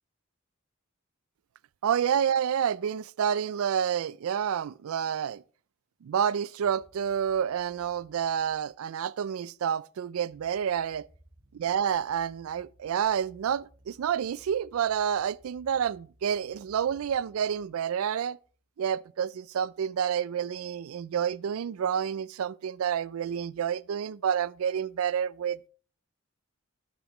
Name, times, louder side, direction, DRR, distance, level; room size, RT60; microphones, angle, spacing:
voice 1, 1.8-5.4 6.0-11.1 11.5-18.4 18.8-25.7, right 8 dB, 80° right, 0.3 m, -29 dB
sound 1, 6.6-9.3 9.6-9.7 10.0-17.9 18.2-18.6 18.9-19.0 19.2-19.3 19.5-19.7 20.0-20.1 20.4-21.2, right 1 dB, 60° right, 2.9 m, -61 dB
12.0 x 7.1 x 3.0 m
head